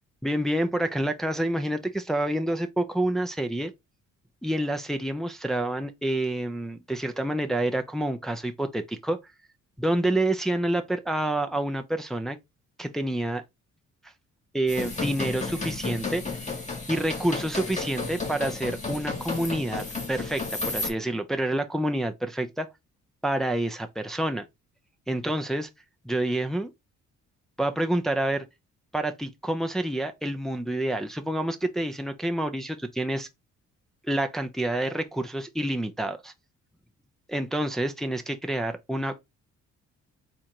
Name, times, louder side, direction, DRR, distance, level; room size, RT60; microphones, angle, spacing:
voice 1, 0.2-3.7 4.4-9.2 9.8-12.4 12.8-13.4 14.5-16.2 16.9-22.7 23.2-24.5 25.1-25.7 26.0-26.7 27.6-28.5 28.9-33.3 34.1-36.3 37.3-39.2, right 1 dB, ahead, 0.6 m, -28 dB
sound 1, 14.7-20.9, left 3 dB, 25° left, 2.1 m, -32 dB
4.3 x 2.6 x 4.4 m
cardioid pair, 90°, 30 cm